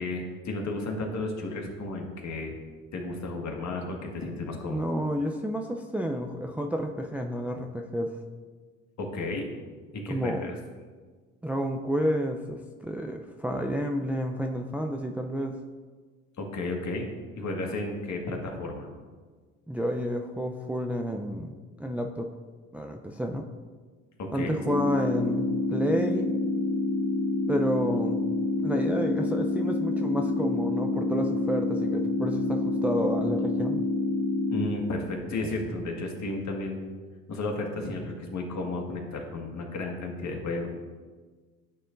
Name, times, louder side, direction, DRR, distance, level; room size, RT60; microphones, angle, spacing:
voice 1, 0.0-2.5 2.9-4.9 9.0-9.4 9.9-10.6 16.4-17.1 17.4-18.9 24.2-24.5 34.5-36.8 37.3-40.7, left 2 dB, 45° left, 1 dB, 1.8 m, -33 dB
voice 2, 4.7-8.2 10.1-10.4 11.4-15.6 19.7-22.3 22.7-23.5 24.3-26.3 27.5-28.2 28.6-33.8, equal, 5° right, 3 dB, 0.5 m, -30 dB
sound 1, 24.6-34.6, left 2 dB, 75° left, 1.1 m, -27 dB
11.5 x 6.6 x 2.6 m, 1.4 s
hypercardioid pair, 60°, 38 cm